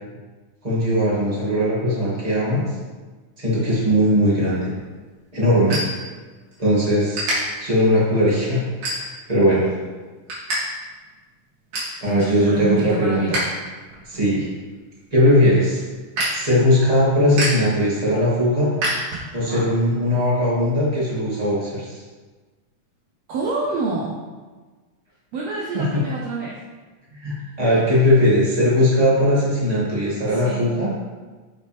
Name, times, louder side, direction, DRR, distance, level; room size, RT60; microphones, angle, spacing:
voice 1, 0.6-2.6 3.4-4.7 5.3-5.8 6.6-7.3 7.6-8.6 8.9-9.7 12.0-13.2 14.1-14.5 15.1-15.8 16.3-18.7 19.3-22.0 25.7-25.8 27.1-30.9, equal, 15° right, -8 dB, 2.3 m, -19 dB
sound 1, 4.6-6.6 6.9-7.4 7.9-8.2 8.7-9.4 9.8-10.6 10.9-11.0 11.3-12.0 12.4-13.4 13.8-19.6, right 1 dB, 90° right, 4.6 m, -29 dB
voice 2, 12.0-13.3 19.3-19.7 23.3-24.2 25.3-26.6 30.3-30.7, right 3 dB, 65° right, -4 dB, 1.9 m, -27 dB
9.0 x 7.3 x 3.5 m, 1.3 s
omnidirectional pair, 3.6 m